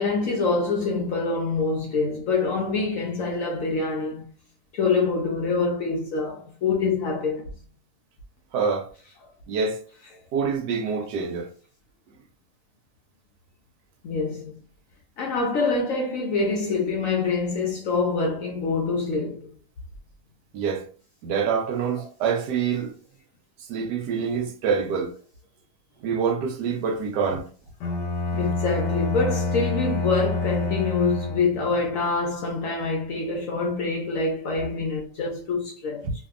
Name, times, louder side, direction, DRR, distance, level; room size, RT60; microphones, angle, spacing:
voice 1, 0.0-4.2 4.7-7.4 14.0-14.5 15.2-19.5 28.3-36.0, left 4 dB, 65° left, 0.8 m, -25 dB
voice 2, 8.5-8.9 9.5-9.8 10.3-11.5 20.5-20.9 21.2-22.9 23.7-25.1 26.0-27.5 36.0-36.1, right 6 dB, 75° right, 1.2 m, -26 dB
Bowed string instrument, 27.8-31.8, left 3 dB, 90° left, 1.4 m, -27 dB
2.8 x 2.6 x 2.4 m
omnidirectional pair, 1.9 m